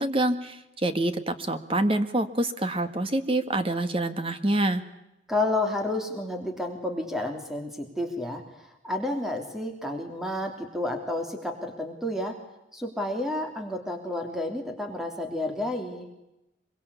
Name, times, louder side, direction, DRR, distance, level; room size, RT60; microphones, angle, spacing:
voice 1, 0.0-4.8, right 1 dB, 30° right, 9 dB, 1.7 m, -26 dB
voice 2, 5.3-8.4 8.8-12.4 12.7-16.1, left 1 dB, ahead, 4 dB, 3.3 m, -30 dB
25.0 x 23.5 x 8.4 m, 0.91 s
head